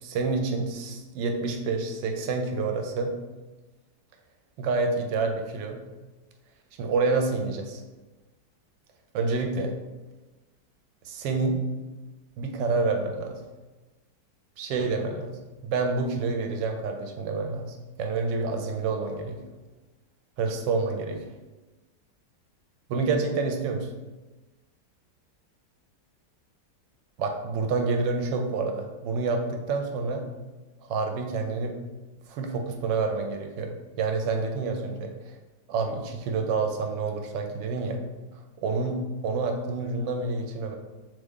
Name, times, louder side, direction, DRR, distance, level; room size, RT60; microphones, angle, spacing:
voice 1, 0.0-3.1 4.6-5.8 6.8-7.8 9.1-9.7 11.0-11.6 12.4-13.4 14.6-19.4 20.4-21.2 22.9-23.9 27.2-30.3 30.9-31.8 32.3-35.1 35.7-38.0 38.6-40.8, right 4 dB, 85° right, 4 dB, 1.3 m, -28 dB
3.5 x 3.3 x 3.6 m, 1.2 s
omnidirectional pair, 1.9 m